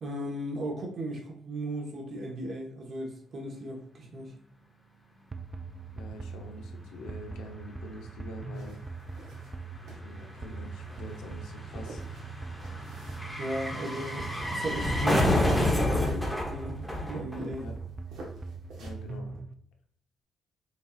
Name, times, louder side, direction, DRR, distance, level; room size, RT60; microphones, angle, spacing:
voice 1, 0.0-4.3 13.4-17.7, right 1 dB, 55° right, 1 dB, 1.1 m, -36 dB
sound 1, 5.3-19.5, right 4 dB, 30° right, 0.3 m, -42 dB
voice 2, 5.9-8.8 9.9-12.0 13.7-13.8 17.6-17.8 18.8-19.4, left 1 dB, 85° left, 3 dB, 0.7 m, -45 dB
sound 2, 7.1-7.2 7.4-17.8 18.1-18.2, left 1 dB, 5° left, 0.8 m, -30 dB
sound 3, 8.5-19.1, right 2 dB, 80° right, 1.1 m, -51 dB
5.1 x 2.7 x 2.3 m, 0.68 s
cardioid pair, 90°, 0 cm